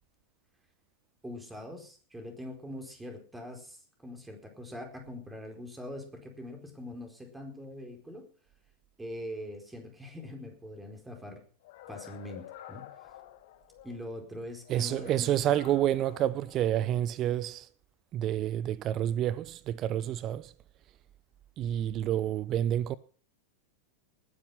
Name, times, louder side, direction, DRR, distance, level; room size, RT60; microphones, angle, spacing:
voice 1, 1.2-8.3 9.0-11.4 11.9-12.8 13.8-15.3, left 1 dB, 10° right, 4.5 m, -43 dB
sound 1, 11.6-14.1 14.6-17.1, left 12 dB, 50° left, 2.2 m, -49 dB
voice 2, 14.7-17.7 18.1-20.5 21.6-23.0, right 12 dB, 35° right, 0.6 m, -29 dB
19.5 x 10.0 x 5.7 m
figure-of-eight pair, 90°, 0 cm